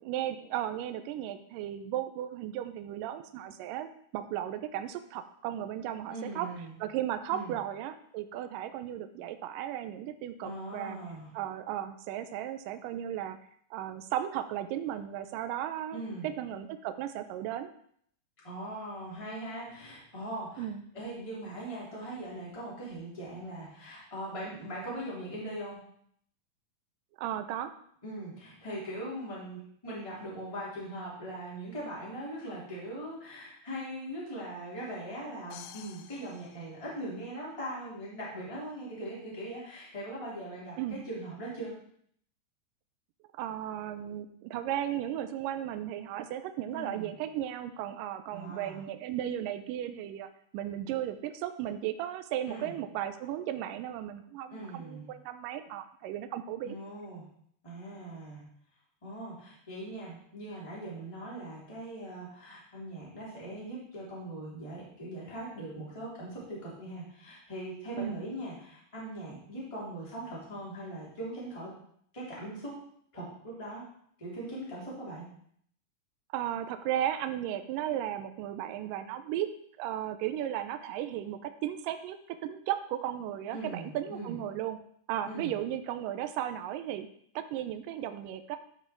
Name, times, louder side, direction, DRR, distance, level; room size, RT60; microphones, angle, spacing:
voice 1, 0.0-6.5 6.8-11.0 11.3-13.4 13.7-17.7 20.6-20.8 27.2-27.7 40.8-41.1 43.4-50.3 50.5-56.8 68.0-68.2 76.3-79.5 79.8-84.8 85.1-87.1 87.4-88.6, right 11 dB, 85° right, 9 dB, 1.9 m, -35 dB
voice 2, 6.1-6.8 7.3-7.6 10.4-11.3 15.9-16.3 18.4-20.7 20.9-25.8 28.0-41.7 46.7-47.1 48.3-48.8 52.5-52.8 54.5-55.1 56.6-57.2 57.6-58.4 59.0-71.7 72.1-72.8 73.1-73.8 74.2-75.3 83.5-84.4 85.2-85.5, right 1 dB, 10° left, -7 dB, 3.1 m, -40 dB
sound 1, 35.5-37.5, left 10 dB, 80° left, 2.1 m, -51 dB
12.5 x 5.7 x 4.6 m, 0.65 s
omnidirectional pair, 4.6 m